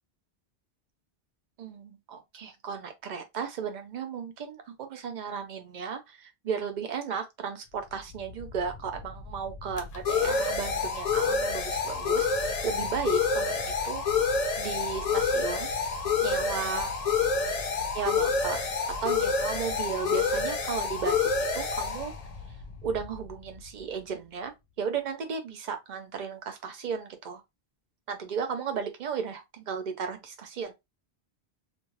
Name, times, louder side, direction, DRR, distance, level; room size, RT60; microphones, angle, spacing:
voice 1, 1.6-14.0 14.6-15.7 16.2-16.9 17.9-18.6 19.0-22.1 22.8-24.5 24.8-27.4 28.1-30.7, right 6 dB, 50° right, 0.7 m, -35 dB
sound 1, 8.1-23.6, left 5 dB, 45° left, 0.5 m, -28 dB
2.6 x 2.2 x 3.1 m
omnidirectional pair, 1.1 m